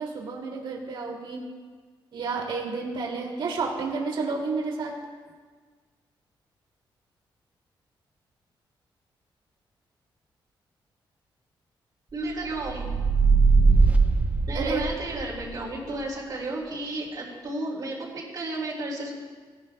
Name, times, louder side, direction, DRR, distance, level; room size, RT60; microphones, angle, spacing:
voice 1, 0.0-1.4 2.1-4.9 14.5-14.8, right 4 dB, 70° right, -2 dB, 2.5 m, -30 dB
voice 2, 12.1-12.9 14.5-19.1, right 2 dB, 55° right, -7 dB, 3.1 m, -32 dB
sound 1, 12.6-15.2, right 4 dB, 15° right, 0.7 m, -20 dB
18.5 x 12.0 x 2.3 m, 1.5 s
wide cardioid pair, 135°, 9 cm